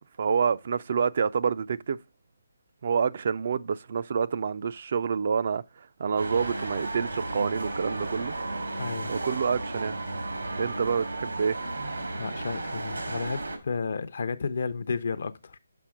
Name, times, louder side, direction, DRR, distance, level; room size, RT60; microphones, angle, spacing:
voice 1, 0.2-2.0 2.8-5.6 6.0-8.3 9.1-10.0 10.6-11.6, right 6 dB, 50° right, 0.4 m, -27 dB
sound 1, 6.1-13.6, right 2 dB, 85° right, 2.2 m, -34 dB
voice 2, 8.8-9.1 12.1-15.6, left 5 dB, 60° left, 0.6 m, -32 dB
6.0 x 5.5 x 4.9 m
hypercardioid pair, 160°, 0 cm